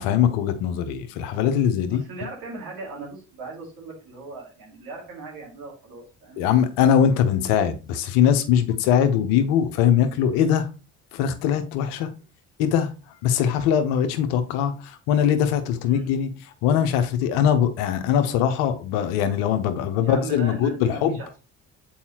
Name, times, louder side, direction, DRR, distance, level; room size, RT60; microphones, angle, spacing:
voice 1, 0.0-2.0 6.4-10.7 11.1-12.1 12.6-12.9 13.2-16.3 16.6-21.2, left 9 dB, 75° left, 1.0 m, -21 dB
voice 2, 1.9-6.4 15.8-16.2 20.0-21.3, right 4 dB, 70° right, 2.4 m, -38 dB
7.2 x 4.7 x 2.9 m
hypercardioid pair, 50°, 36 cm